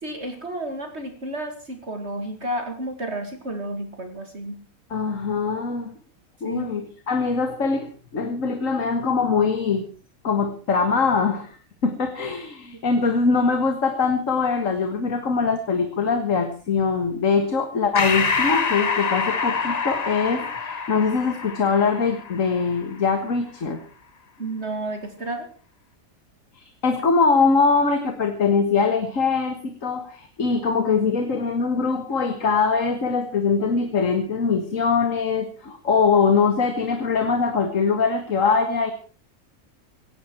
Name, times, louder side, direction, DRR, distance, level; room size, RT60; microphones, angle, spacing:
voice 1, 0.0-4.6 6.4-6.7 24.4-25.5, right 1 dB, 50° right, 5 dB, 2.5 m, -31 dB
voice 2, 4.9-5.9 6.4-9.9 10.2-11.5 11.8-23.8 26.5-38.9, left 5 dB, 65° left, 7 dB, 2.1 m, -22 dB
Breathing, 18.0-22.8, left 5 dB, 30° left, 0.9 m, -26 dB
17.5 x 16.5 x 4.6 m, 0.38 s
omnidirectional pair, 1.5 m